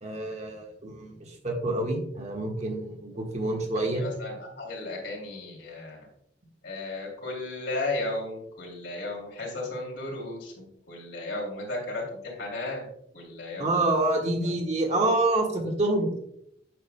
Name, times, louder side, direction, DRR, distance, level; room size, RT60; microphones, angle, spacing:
voice 1, 0.0-4.0 13.6-16.2, right 2 dB, 40° right, 0 dB, 1.5 m, -27 dB
voice 2, 3.9-6.0 6.6-12.8 13.1-13.7 14.4-14.5, left 2 dB, 75° left, -1 dB, 2.8 m, -34 dB
9.0 x 7.1 x 2.2 m, 0.74 s
head